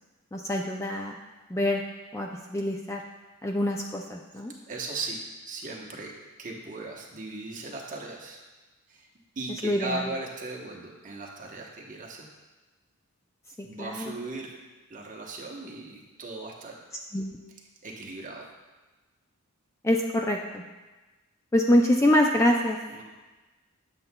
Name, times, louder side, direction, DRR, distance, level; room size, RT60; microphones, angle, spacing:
voice 1, 0.3-1.2 1.5-1.8 2.1-3.0 3.4-4.5 9.6-10.0 13.6-14.1 17.1-17.4 19.8-20.6 21.5-22.8, left 1 dB, 15° left, 1 dB, 0.3 m, -25 dB
voice 2, 4.7-6.1 6.4-8.4 8.9-9.1 9.4-12.3 13.6-14.5 14.9-16.8 17.8-18.4 22.9-23.0, right 2 dB, 35° right, -1 dB, 0.9 m, -37 dB
7.9 x 7.6 x 2.2 m, 1.2 s
head